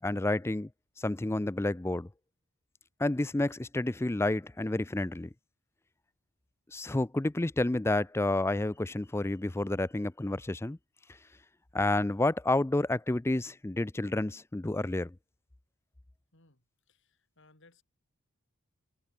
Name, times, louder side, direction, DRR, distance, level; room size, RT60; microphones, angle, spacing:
voice 1, 0.0-0.7 1.0-2.1 3.0-5.3 6.7-10.8 11.7-15.1, left 2 dB, 10° left, 0.4 m, -30 dB
voice 2, 16.3-17.8, left 2 dB, 55° left, 4.7 m, -63 dB
head